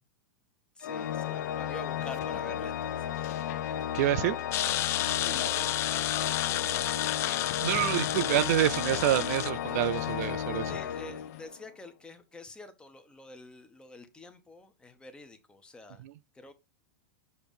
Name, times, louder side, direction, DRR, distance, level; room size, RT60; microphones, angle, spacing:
voice 1, 0.7-3.3 5.2-8.2 10.7-16.0 16.3-16.5, left 3 dB, 10° left, 0.9 m, -48 dB
Organ, 0.8-11.7, left 10 dB, 85° left, 0.5 m, -34 dB
sound 1, 1.6-11.5, left 11 dB, 55° left, 0.8 m, -49 dB
voice 2, 3.9-4.4 7.6-10.7 16.0-16.1, right 13 dB, 60° right, 0.5 m, -27 dB
sound 2, 4.5-9.5, left 14 dB, 25° left, 0.3 m, -31 dB
7.0 x 3.0 x 5.3 m
supercardioid pair, 150°, 10 cm